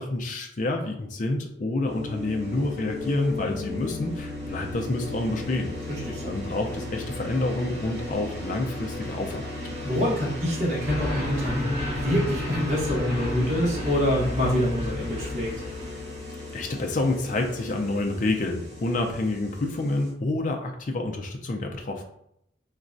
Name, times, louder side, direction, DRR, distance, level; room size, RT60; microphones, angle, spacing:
voice 1, 0.0-5.7 6.2-9.7 16.5-22.0, left 2 dB, 45° left, 3 dB, 0.4 m, -28 dB
sound 1, 1.9-20.1, left 2 dB, 65° right, 1.3 m, -36 dB
voice 2, 5.9-6.4 9.8-15.5, equal, 40° right, -5 dB, 1.2 m, -26 dB
Flowers Intro kkz+sleep+elmomo, 10.8-16.2, left 1 dB, 25° right, 1.3 m, -32 dB
3.9 x 2.2 x 2.5 m, 0.74 s
head